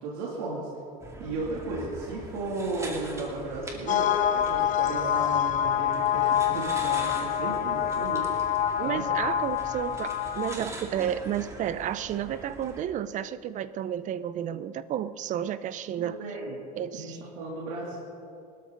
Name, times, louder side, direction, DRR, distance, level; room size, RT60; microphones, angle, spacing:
voice 1, 0.0-0.7 1.2-8.2 8.8-9.0 16.0-16.6 16.9-18.0, right 3 dB, 80° right, -4 dB, 2.9 m, -35 dB
sound 1, 1.0-12.8, right 1 dB, 15° right, 2.4 m, -42 dB
sound 2, 3.9-10.5, left 10 dB, 40° left, 0.8 m, -26 dB
voice 2, 8.8-16.2 16.8-17.2, right 10 dB, 40° right, 14 dB, 0.6 m, -31 dB
24.0 x 13.0 x 4.0 m, 2.6 s
supercardioid pair, 125°, 20 cm